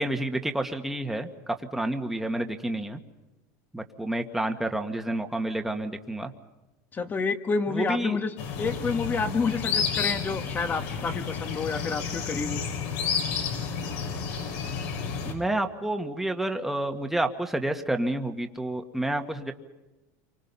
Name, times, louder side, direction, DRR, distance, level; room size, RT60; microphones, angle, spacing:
voice 1, 0.0-3.0 3.7-6.3 7.7-8.2 15.3-19.5, right 1 dB, 5° right, 4 dB, 1.7 m, -29 dB
voice 2, 6.9-12.6, left 4 dB, 20° left, 9 dB, 1.5 m, -29 dB
sound 1, 8.4-15.3, left 6 dB, 70° left, 5.5 m, -31 dB
30.0 x 24.5 x 5.6 m, 1.0 s
supercardioid pair, 135°, 9 cm